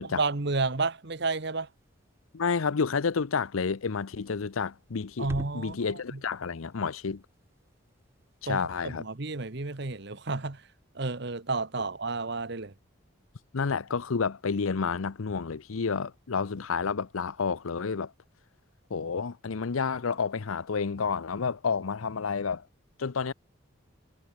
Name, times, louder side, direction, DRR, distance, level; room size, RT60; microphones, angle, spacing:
voice 1, 0.1-1.7 5.2-6.2 8.5-10.6 10.9-12.7, right 3 dB, 55° right, 1.2 m, -31 dB
sound 1, 1.2-10.1, equal, 10° right, 4.1 m, -50 dB
voice 2, 2.3-7.2 8.4-9.1 13.5-18.1 18.9-22.7 23.0-23.3, left 5 dB, 85° left, 0.7 m, -30 dB
head